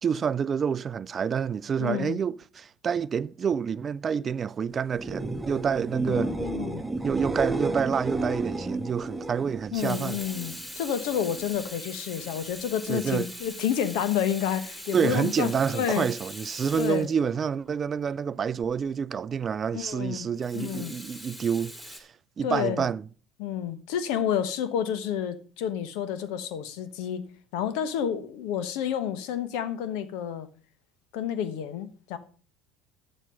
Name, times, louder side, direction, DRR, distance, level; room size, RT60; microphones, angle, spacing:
voice 1, 0.0-6.3 7.0-10.2 12.9-13.3 14.9-22.1 22.4-23.0, right 7 dB, 35° right, 0.4 m, -28 dB
voice 2, 1.8-2.2 6.1-6.8 9.7-16.1 16.7-17.1 19.7-20.3 20.5-20.9 22.4-22.9 23.4-27.2 27.5-30.5 31.1-32.2, left 9 dB, 70° left, 1.2 m, -30 dB
sound 1, 4.9-10.7 11.0-11.6 18.6-18.7, right 2 dB, 10° right, 1.1 m, -32 dB
Water tap faucet / Sink (filling or washing), 9.7-17.7 20.4-22.0, equal, 10° left, 4.5 m, -42 dB
9.8 x 7.4 x 5.3 m
hypercardioid pair, 75°, 0 cm